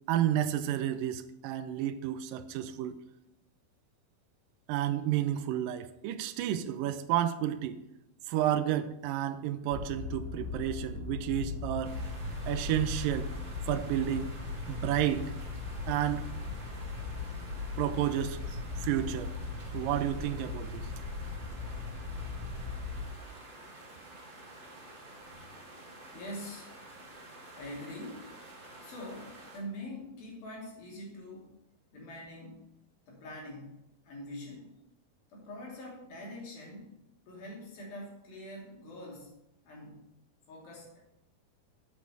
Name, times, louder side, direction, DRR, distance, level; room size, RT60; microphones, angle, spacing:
voice 1, 0.1-3.0 4.7-7.8 8.3-12.0 12.5-13.3 13.7-14.4 14.7-15.3 15.9-16.2 17.8-19.3 19.7-20.9, right 11 dB, 80° right, 10 dB, 2.1 m, -31 dB
sound 1, 9.7-23.1, left 3 dB, 60° left, 3.0 m, -38 dB
sound 2, 11.8-29.6, right 2 dB, 30° right, 1.3 m, -50 dB
voice 2, 26.1-26.7 27.5-28.3 28.8-31.6 31.9-32.7 33.1-34.8 35.3-37.0 37.3-39.3 39.6-40.0 40.5-41.0, left 1 dB, 75° left, -3 dB, 4.6 m, -44 dB
8.4 x 5.8 x 7.6 m, 0.86 s
omnidirectional pair, 4.2 m